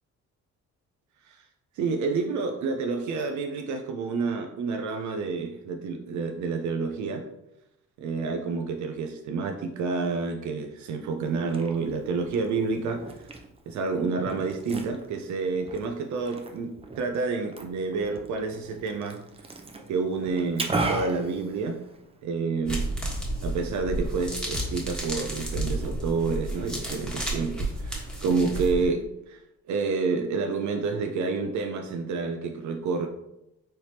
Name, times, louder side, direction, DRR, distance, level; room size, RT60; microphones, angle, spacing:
voice 1, 1.8-7.2 8.0-13.0 13.7-19.2 19.9-21.8 22.2-22.9 23.4-29.4 29.7-33.1, right 4 dB, 70° right, 4 dB, 0.5 m, -29 dB
Liquid, 11.2-22.2, right 2 dB, 20° right, 0.6 m, -37 dB
sound 1, 22.7-28.9, right 1 dB, 5° left, 1.2 m, -31 dB
4.4 x 3.3 x 2.8 m, 0.86 s
cardioid pair, 90°, 30 cm